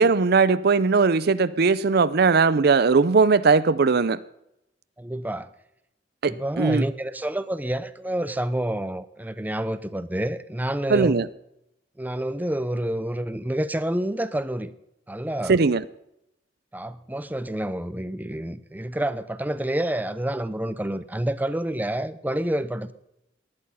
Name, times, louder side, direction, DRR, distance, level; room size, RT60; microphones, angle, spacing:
voice 1, 0.0-4.2 6.2-6.8 10.9-11.3 15.5-15.8, right 4 dB, 60° right, 0.6 m, -19 dB
voice 2, 5.0-5.5 6.3-11.2 12.0-14.7 15.1-15.6 16.7-22.9, right 1 dB, 10° right, 0.7 m, -28 dB
18.5 x 11.0 x 5.6 m
head